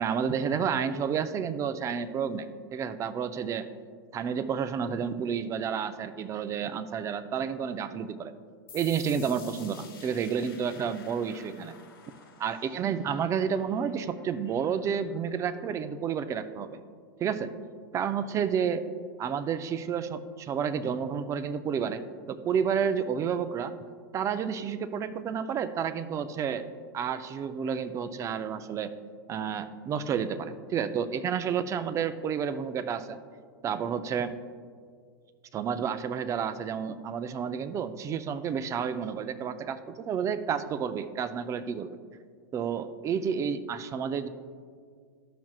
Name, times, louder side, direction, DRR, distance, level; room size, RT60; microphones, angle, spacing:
voice 1, 0.0-3.7 4.1-8.3 8.7-11.7 12.4-16.8 17.2-17.5 17.9-18.8 19.2-23.7 24.1-26.7 26.9-28.9 29.3-33.2 33.6-34.3 35.5-42.0 42.5-44.3, right 7 dB, 25° right, 11 dB, 0.4 m, -30 dB
sound 1, 8.7-16.1, left 5 dB, 90° left, 1.4 m, -52 dB
13.0 x 5.9 x 2.4 m, 2.1 s
hypercardioid pair, 115°, 12 cm